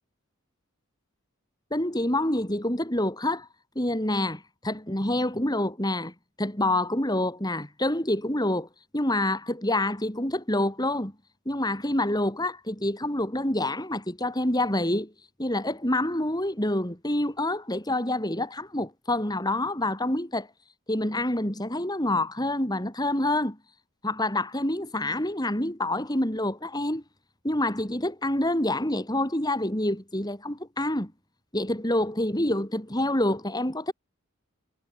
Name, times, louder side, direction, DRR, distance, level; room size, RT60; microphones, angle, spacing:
voice 1, 1.7-3.5 3.7-8.7 8.9-11.1 11.5-15.1 15.4-20.5 20.9-23.6 24.0-27.0 27.4-31.1 31.5-33.9, left 1 dB, 20° left, 4.6 m, -27 dB
head